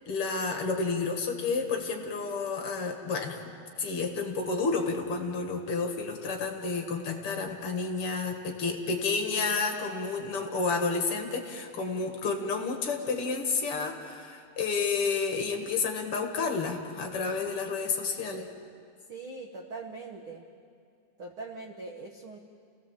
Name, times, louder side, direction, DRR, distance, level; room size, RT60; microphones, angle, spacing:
voice 1, 0.1-3.4 3.8-18.5, left 4 dB, 45° left, 3 dB, 2.2 m, -30 dB
voice 2, 19.1-20.4 21.2-22.4, right 3 dB, 85° right, 3 dB, 1.1 m, -41 dB
29.5 x 17.5 x 7.5 m, 2.3 s
omnidirectional pair, 4.2 m